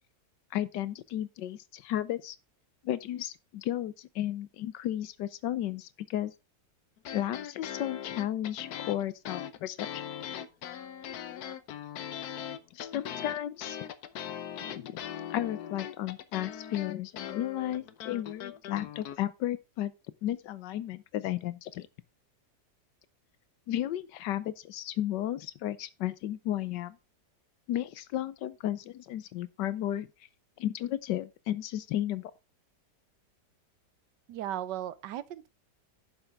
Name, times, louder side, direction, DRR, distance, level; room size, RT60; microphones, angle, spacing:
voice 1, 0.5-2.4 2.8-6.3 7.1-10.0 12.7-13.8 14.7-15.0 15.3-19.9 20.2-21.9 23.7-27.0 27.7-30.1 30.6-32.3, left 12 dB, 90° left, 1.4 m, -33 dB
sound 1, 7.0-19.2, left 9 dB, 65° left, 1.2 m, -40 dB
voice 2, 34.3-35.5, right 11 dB, 85° right, 1.4 m, -36 dB
10.5 x 7.3 x 3.5 m
omnidirectional pair, 1.8 m